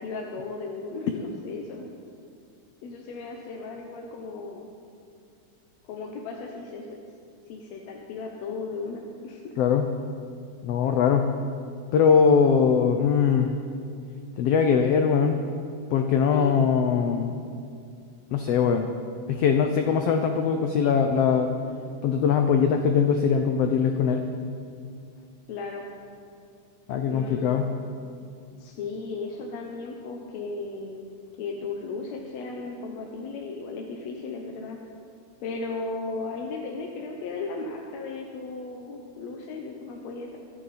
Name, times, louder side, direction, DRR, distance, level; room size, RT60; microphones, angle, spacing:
voice 1, 0.0-2.0 2.8-4.7 5.9-7.0 7.5-9.5 16.3-16.6 25.5-25.9 27.1-27.6 28.6-31.0 31.4-34.8 35.4-40.4, left 3 dB, 65° left, 0 dB, 2.0 m, -35 dB
voice 2, 9.6-9.9 10.6-11.3 11.9-13.5 14.4-15.4 15.9-17.4 18.3-18.9 19.3-21.6 22.0-24.3 26.9-27.7, left 6 dB, 85° left, 5 dB, 1.4 m, -21 dB
24.5 x 8.4 x 4.2 m, 2.4 s
omnidirectional pair, 3.7 m